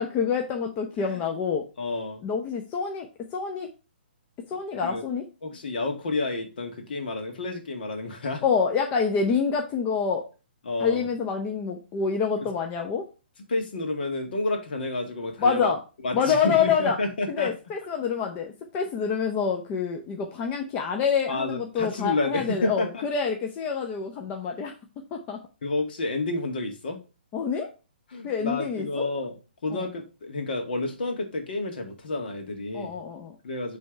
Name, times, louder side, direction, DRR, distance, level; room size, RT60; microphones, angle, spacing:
voice 1, 0.0-1.6 2.2-3.1 3.3-3.7 4.5-5.2 8.4-10.2 10.8-13.0 15.4-15.8 16.1-17.0 17.3-24.7 25.1-25.4 27.3-27.7 28.2-29.1 29.7-29.8 32.7-33.4, left 6 dB, 25° left, 3 dB, 0.8 m, -27 dB
voice 2, 1.8-2.2 4.8-5.0 5.4-8.4 10.6-11.1 12.4-12.5 13.5-15.7 16.0-17.5 21.3-23.0 25.6-27.0 28.1-29.3 29.6-33.0 33.4-33.8, left 2 dB, 60° left, 4 dB, 2.0 m, -30 dB
8.2 x 3.5 x 4.6 m, 0.32 s
figure-of-eight pair, 130°, 6 cm